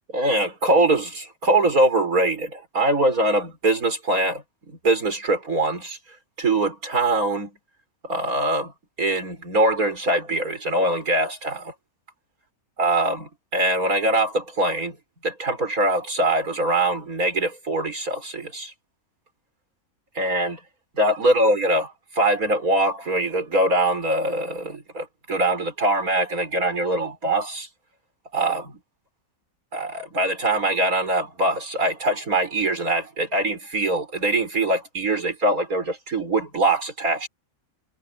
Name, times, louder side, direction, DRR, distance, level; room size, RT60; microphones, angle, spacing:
voice 1, 0.1-6.0 6.4-7.5 8.0-8.7 9.0-11.7 12.8-15.0 15.2-18.7 20.2-20.6 20.9-27.7 28.3-28.8 29.7-37.3, right 1 dB, 80° right, 5.7 m, -23 dB
omnidirectional pair, 1.5 m